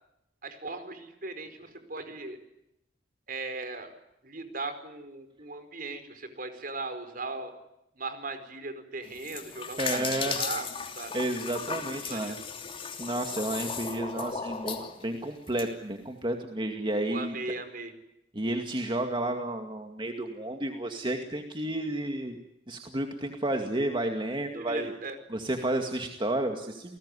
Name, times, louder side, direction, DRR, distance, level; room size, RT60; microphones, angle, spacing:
voice 1, 0.4-2.4 3.3-3.9 4.2-7.5 8.0-10.7 10.9-11.1 11.7-12.4 17.1-17.9 24.5-25.2, right 3 dB, 50° right, 10 dB, 4.7 m, -38 dB
sound 1, 9.0-15.7, left 5 dB, 30° left, 3.0 m, -36 dB
voice 2, 9.8-10.4 11.1-12.4 13.0-17.3 18.3-22.4 22.7-24.9 25.3-27.0, right 1 dB, 25° right, 4 dB, 2.2 m, -31 dB
29.5 x 20.0 x 9.8 m, 0.87 s
head